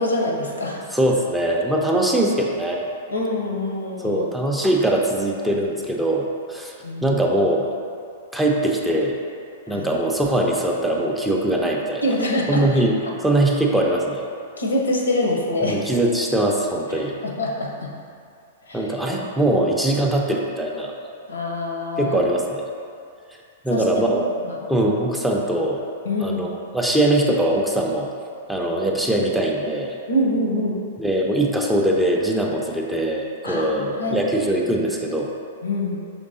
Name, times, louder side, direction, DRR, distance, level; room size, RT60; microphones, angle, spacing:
voice 1, 0.0-0.8 3.1-4.3 6.8-7.2 9.7-9.9 12.0-12.8 14.6-15.8 17.2-17.9 18.7-18.9 21.3-22.2 23.7-24.7 26.0-26.4 30.1-30.8 33.4-34.2 35.6-36.0, left 1 dB, 85° left, -1 dB, 0.7 m, -25 dB
voice 2, 0.9-2.8 4.0-6.7 7.0-7.7 8.3-9.2 9.7-12.0 12.5-13.0 13.2-14.2 15.6-17.1 18.7-20.9 22.0-22.6 23.6-24.2 24.7-25.8 26.2-28.1 28.5-29.9 31.0-35.3, right 1 dB, 5° right, -1 dB, 0.4 m, -21 dB
5.2 x 3.2 x 2.6 m, 2.4 s
figure-of-eight pair, 105°, 0 cm